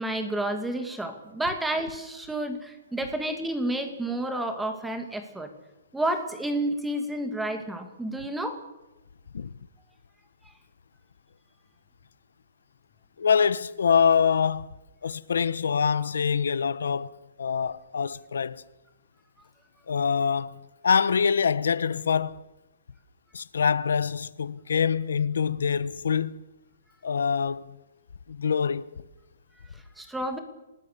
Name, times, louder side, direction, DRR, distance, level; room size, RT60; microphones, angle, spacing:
voice 1, 0.0-5.5 5.9-8.6 30.0-30.4, right 1 dB, 5° right, 2.5 m, -30 dB
voice 2, 13.2-14.7 15.0-17.1 17.4-18.6 19.9-22.4 23.3-26.4 27.0-27.8 28.3-28.9, left 6 dB, 90° left, 1.1 m, -25 dB
27.5 x 19.5 x 6.8 m
hypercardioid pair, 160°, 0 cm